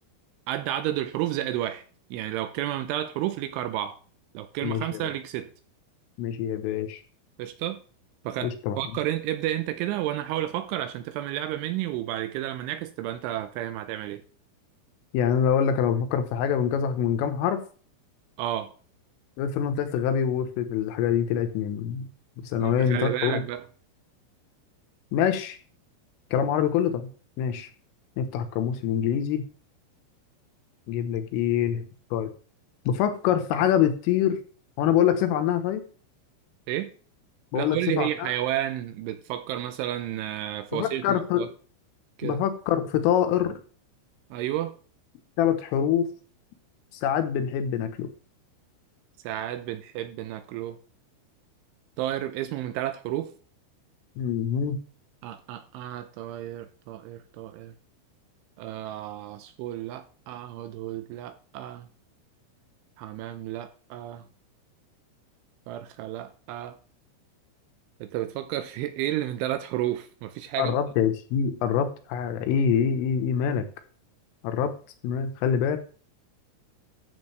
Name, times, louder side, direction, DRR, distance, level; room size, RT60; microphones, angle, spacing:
voice 1, 0.5-1.8 2.1-4.0 4.3-5.5 7.4-7.8 8.2-14.2 18.4-18.7 22.6-23.6 36.7-36.9 37.5-41.5 42.2-42.4 44.3-44.7 49.2-50.8 52.0-53.3 55.2-57.7 58.6-61.9 63.0-64.2 65.7-66.8 68.0-70.8, right 13 dB, 80° right, 2.9 m, -31 dB
voice 2, 4.6-5.1 6.2-7.0 8.4-8.8 15.1-17.6 19.4-22.1 22.4-23.4 25.1-25.6 26.3-27.1 27.4-27.7 28.2-29.4 30.9-31.9 32.1-32.3 32.9-34.4 34.8-35.8 37.5-38.3 40.7-41.5 42.2-43.6 45.4-46.1 47.0-48.1 54.2-54.8 70.6-73.7 74.4-74.7 75.0-75.8, left 8 dB, 80° left, 3.6 m, -25 dB
13.5 x 7.9 x 3.3 m
omnidirectional pair, 6.0 m